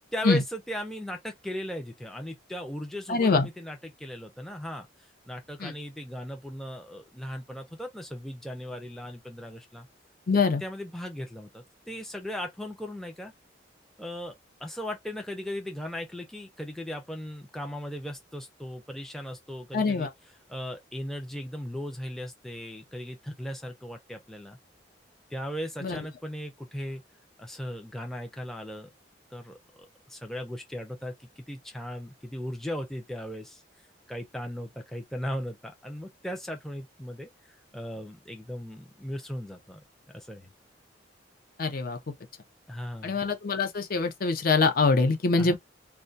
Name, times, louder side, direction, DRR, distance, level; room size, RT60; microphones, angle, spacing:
voice 1, 0.1-4.9 5.3-9.9 10.4-13.3 14.0-14.3 14.6-20.1 20.5-24.6 25.3-27.0 27.4-28.9 29.3-31.1 31.5-33.6 34.1-40.5 42.7-43.2 45.4-45.6, equal, ahead, 0.4 m, -37 dB
voice 2, 3.1-3.5 5.6-5.7 10.3-10.6 19.7-20.1 25.8-26.0 41.6-42.0 43.0-45.6, left 4 dB, 50° left, 0.5 m, -24 dB
2.2 x 2.2 x 2.5 m
head